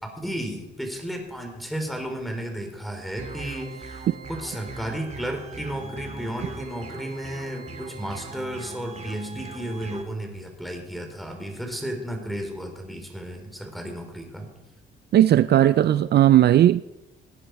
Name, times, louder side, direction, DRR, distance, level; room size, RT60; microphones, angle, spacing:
voice 1, 0.0-14.5, right 1 dB, ahead, 3.8 m, -33 dB
sound 1, 3.2-10.0, right 4 dB, 35° right, 2.3 m, -39 dB
voice 2, 15.1-16.8, right 12 dB, 55° right, 0.4 m, -16 dB
19.0 x 10.0 x 4.7 m
cardioid pair, 90°, 20 cm